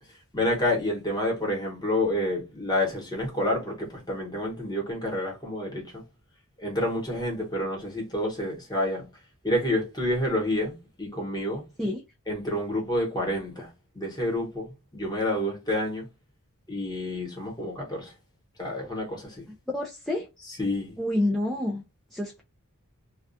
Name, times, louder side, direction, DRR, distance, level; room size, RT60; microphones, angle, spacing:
voice 1, 0.3-6.0 6.6-9.0 9.4-11.6 12.3-13.7 13.9-16.1 16.7-18.1 18.6-19.4 20.6-21.0, left 1 dB, 20° left, 1.0 m, -28 dB
voice 2, 19.5-20.3 21.0-21.8 22.1-22.4, left 1 dB, ahead, 0.3 m, -28 dB
2.3 x 2.2 x 2.5 m
head